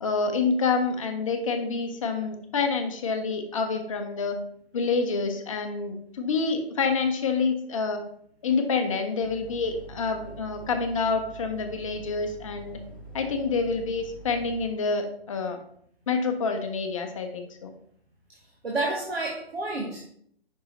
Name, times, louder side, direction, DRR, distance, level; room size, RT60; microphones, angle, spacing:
voice 1, 0.0-4.4 4.7-8.0 8.4-12.8 13.1-15.6 16.1-17.7, left 4 dB, 30° left, 5 dB, 0.8 m, -27 dB
sound 1, 9.2-14.7, right 3 dB, 5° left, 0.4 m, -45 dB
voice 2, 18.4-20.0, right 2 dB, 70° right, 0 dB, 1.3 m, -30 dB
5.6 x 5.4 x 3.8 m, 0.66 s
figure-of-eight pair, 135°, 32 cm